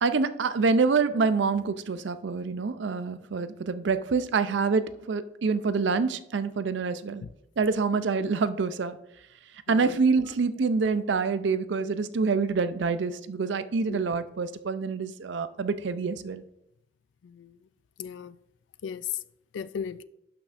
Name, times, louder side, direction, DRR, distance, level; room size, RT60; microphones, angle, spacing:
voice 1, 0.0-7.2 7.6-9.0 9.7-16.4, right 4 dB, 75° right, 0.5 m, -26 dB
voice 2, 9.7-10.0 13.9-14.1 17.2-17.5 18.0-18.4 18.8-19.1 19.5-20.0, left 6 dB, 80° left, 0.3 m, -37 dB
12.0 x 5.9 x 2.5 m
head